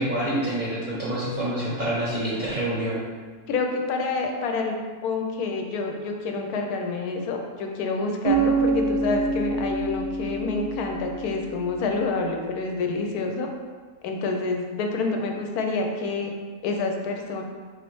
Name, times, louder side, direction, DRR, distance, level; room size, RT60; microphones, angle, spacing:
voice 1, 0.0-3.0, right 1 dB, 45° right, -7 dB, 0.6 m, -27 dB
voice 2, 3.5-4.8 5.0-13.5 14.0-16.3 16.6-17.4, left 3 dB, 85° left, 3 dB, 1.1 m, -27 dB
Bass guitar, 8.2-12.1, right 3 dB, 85° right, 1.2 m, -27 dB
4.2 x 3.1 x 3.0 m, 1.5 s
omnidirectional pair, 1.6 m